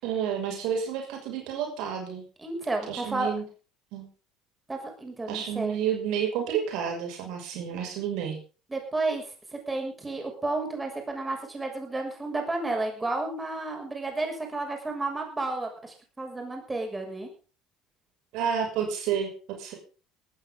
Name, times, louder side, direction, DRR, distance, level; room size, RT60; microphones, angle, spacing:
voice 1, 0.0-2.2 2.9-3.4 3.9-4.1 5.3-8.4 18.3-19.3 19.6-19.7, right 8 dB, 65° right, 2 dB, 6.2 m, -30 dB
voice 2, 2.4-3.3 4.7-5.7 8.7-9.2 9.5-17.3, right 2 dB, 15° right, 3 dB, 6.7 m, -32 dB
18.5 x 15.0 x 3.9 m, 0.36 s
hypercardioid pair, 65°, 0 cm